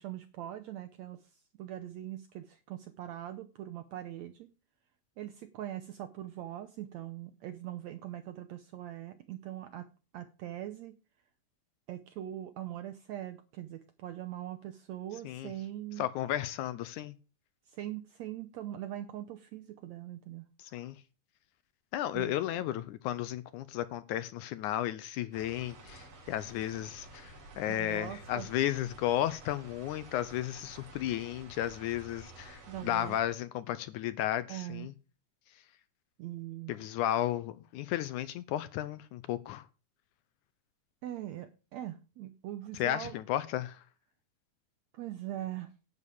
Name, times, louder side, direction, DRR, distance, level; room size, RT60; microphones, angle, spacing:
voice 1, 0.0-4.5 5.2-9.9 10.1-11.0 11.9-16.1 17.7-20.5 22.1-22.4 27.7-28.5 32.7-33.2 34.5-34.9 36.2-36.7 41.0-43.1 44.9-45.7, right 12 dB, 70° right, 1.8 m, -42 dB
voice 2, 16.0-17.1 20.6-21.0 21.9-34.9 36.7-39.7 42.7-43.8, left 12 dB, 75° left, 2.0 m, -34 dB
sound 1, 25.3-33.2, right 2 dB, 50° right, 3.7 m, -52 dB
11.0 x 5.3 x 8.5 m
omnidirectional pair, 3.8 m